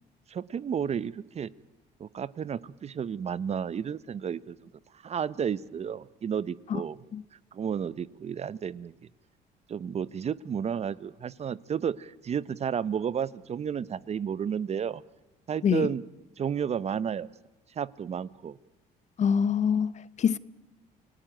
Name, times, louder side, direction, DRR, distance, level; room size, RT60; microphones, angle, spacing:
voice 1, 0.3-1.5 2.0-4.7 5.0-7.0 7.5-8.9 9.7-15.0 15.5-16.0 16.4-17.3 17.8-18.6, right 7 dB, 40° right, 0.9 m, -32 dB
voice 2, 19.2-19.9 20.2-20.4, left 7 dB, 45° left, 0.8 m, -24 dB
29.0 x 18.0 x 9.0 m
cardioid pair, 110°, 17 cm